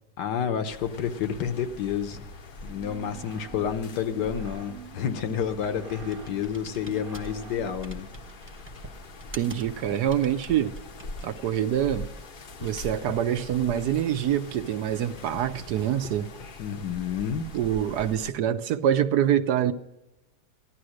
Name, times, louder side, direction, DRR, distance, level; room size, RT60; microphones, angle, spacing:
voice 1, 0.2-2.3 2.6-8.1 16.6-17.5, left 8 dB, 80° left, 1.6 m, -30 dB
sound 1, 0.7-18.3, left 2 dB, 45° left, 0.7 m, -43 dB
sound 2, 2.6-7.9, right 8 dB, 40° right, 0.8 m, -47 dB
Computer keyboard, 4.8-11.8, right 1 dB, 10° right, 0.7 m, -49 dB
voice 2, 9.3-10.7 11.2-12.1 12.6-16.3 17.5-19.7, right 10 dB, 75° right, 1.2 m, -25 dB
15.5 x 12.0 x 6.4 m
omnidirectional pair, 1.8 m